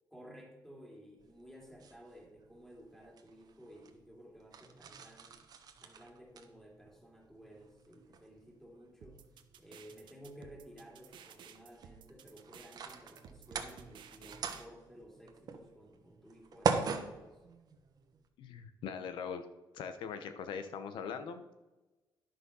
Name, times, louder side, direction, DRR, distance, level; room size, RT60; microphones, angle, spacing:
voice 1, 0.1-5.4 5.8-9.2 9.6-17.4, equal, 5° left, 0 dB, 2.6 m, -55 dB
sound 1, 1.2-18.3, right 5 dB, 55° right, 1.1 m, -43 dB
sound 2, 9.0-14.6, right 8 dB, 75° right, 0.9 m, -55 dB
voice 2, 18.4-19.4 19.7-21.5, left 6 dB, 90° left, 9 dB, 0.9 m, -41 dB
10.5 x 6.2 x 5.5 m, 1.1 s
cardioid pair, 125°, 8 cm